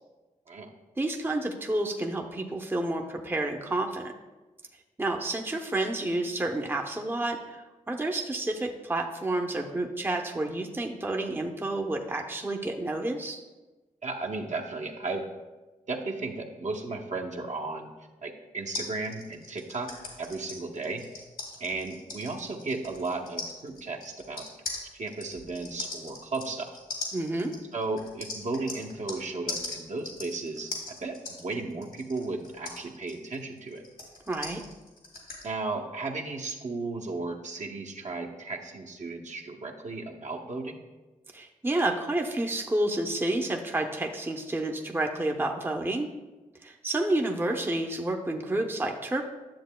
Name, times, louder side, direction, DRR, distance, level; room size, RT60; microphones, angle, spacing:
voice 1, 1.0-4.1 5.0-13.4 27.1-27.5 34.3-34.6 41.3-46.1 46.6-49.2, right 2 dB, 15° right, 2 dB, 0.6 m, -30 dB
voice 2, 14.0-15.2 15.9-17.9 18.2-19.9 20.2-21.0 21.6-24.5 24.9-26.8 27.7-33.8 35.4-40.8, right 3 dB, 55° right, 1 dB, 0.9 m, -35 dB
sound 1, 18.7-29.2 29.5-35.5, left 3 dB, 80° left, 2.0 m, -40 dB
10.5 x 7.1 x 2.2 m, 1.2 s
cardioid pair, 60°, 14 cm